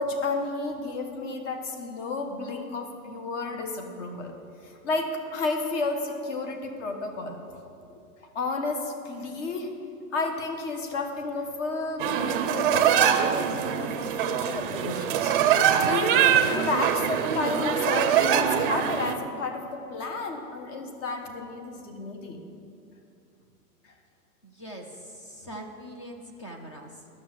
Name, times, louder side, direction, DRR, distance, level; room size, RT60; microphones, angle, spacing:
voice 1, 0.0-4.3 4.6-7.4 8.3-9.7 10.1-15.3 15.8-22.4 23.8-23.9, left 3 dB, 50° left, 4 dB, 1.5 m, -32 dB
sound 1, 12.0-19.2, right 9 dB, 35° right, 0.5 m, -23 dB
voice 2, 24.4-27.1, equal, 20° left, 3 dB, 0.4 m, -42 dB
11.5 x 6.3 x 7.6 m, 2.5 s
supercardioid pair, 165°, 47 cm